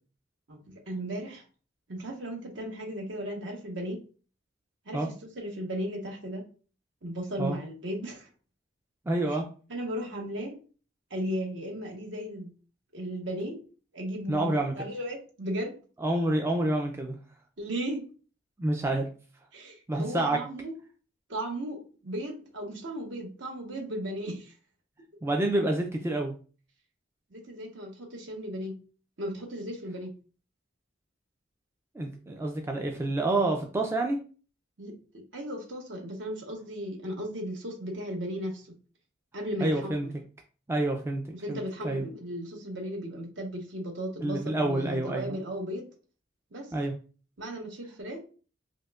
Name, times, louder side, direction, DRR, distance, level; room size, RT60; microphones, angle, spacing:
voice 1, 0.5-1.4 1.9-4.0 4.9-6.4 7.0-8.3 9.3-9.4 9.7-10.6 11.1-12.5 12.9-13.6 13.9-15.8 17.6-18.0 19.5-20.8 21.3-24.5 27.3-28.7 29.2-30.1 34.8-38.7 39.3-40.1 41.3-45.9 46.5-46.7 47.4-48.2, equal, 65° right, 1 dB, 1.0 m, -36 dB
voice 2, 9.1-9.5 14.3-14.9 16.0-17.2 18.6-19.1 19.9-20.4 25.2-26.3 32.0-34.2 39.6-40.1 40.7-42.0 44.2-45.4 46.7-46.9, right 2 dB, 15° right, 2 dB, 0.3 m, -28 dB
5.0 x 2.1 x 2.3 m, 0.38 s
head